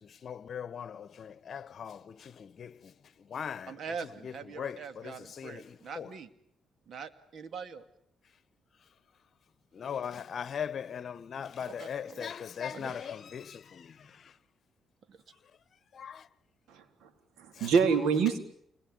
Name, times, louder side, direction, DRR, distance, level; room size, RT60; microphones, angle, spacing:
voice 1, 0.2-2.7 3.3-3.7 4.2-6.1 9.7-13.9 15.9-16.2, left 8 dB, 55° left, 1.2 m, -39 dB
voice 2, 3.7-6.3 6.9-7.8 11.7-12.3 12.7-13.1 15.1-15.2, right 5 dB, 60° right, 2.5 m, -43 dB
voice 3, 16.7-17.1 17.4-18.4, right 6 dB, 85° right, 3.9 m, -26 dB
29.0 x 21.5 x 9.6 m
cardioid pair, 90°, 0 cm